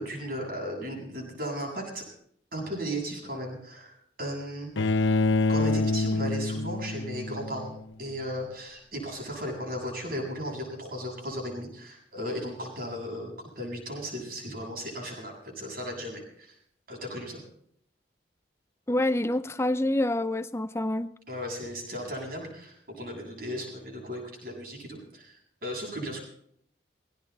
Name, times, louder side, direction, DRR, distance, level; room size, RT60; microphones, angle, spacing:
voice 1, 0.0-2.0 2.5-4.7 5.5-16.5 16.9-17.4 21.3-26.2, equal, 50° right, 7.8 m, -36 dB
Bowed string instrument, 4.8-7.8, left 3 dB, 90° left, 0.8 m, -26 dB
voice 2, 18.9-21.1, left 1 dB, 15° left, 0.7 m, -27 dB
18.0 x 17.5 x 4.2 m
head